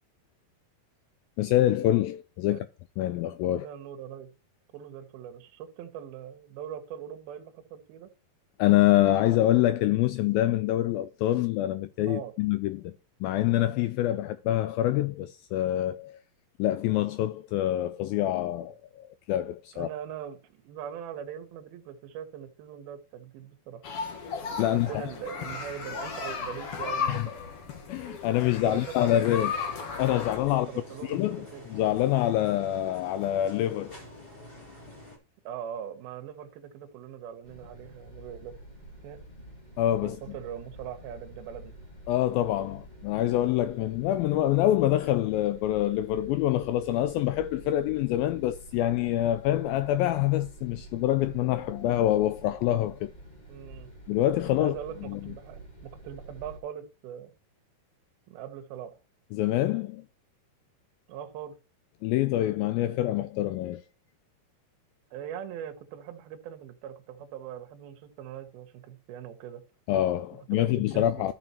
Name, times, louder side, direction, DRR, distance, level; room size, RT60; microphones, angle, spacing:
voice 1, 1.4-2.7 3.0-3.7 8.6-12.9 13.2-16.2 16.6-19.9 24.6-24.9 27.1-27.3 27.9-29.5 30.0-30.7 31.0-34.0 39.8-40.2 42.1-53.1 54.1-54.8 55.1-55.2 59.3-60.0 62.0-63.8 69.9-71.3, left 13 dB, 90° left, 2.0 m, -26 dB
voice 2, 3.6-4.3 4.7-8.1 12.0-12.3 14.1-14.2 19.7-23.8 24.6-27.3 28.5-29.5 30.5-31.7 35.4-38.6 39.0-39.2 40.0-41.8 53.5-53.9 54.6-57.3 58.3-59.0 61.1-61.6 65.1-69.6 70.5-71.3, right 9 dB, 75° right, 2.8 m, -41 dB
sound 1, 23.8-30.4, left 6 dB, 60° left, 1.5 m, -35 dB
sound 2, 29.3-35.2, left 1 dB, 15° left, 2.5 m, -47 dB
sound 3, 37.4-56.6, right 1 dB, 35° left, 0.6 m, -48 dB
13.5 x 6.0 x 2.9 m
omnidirectional pair, 4.7 m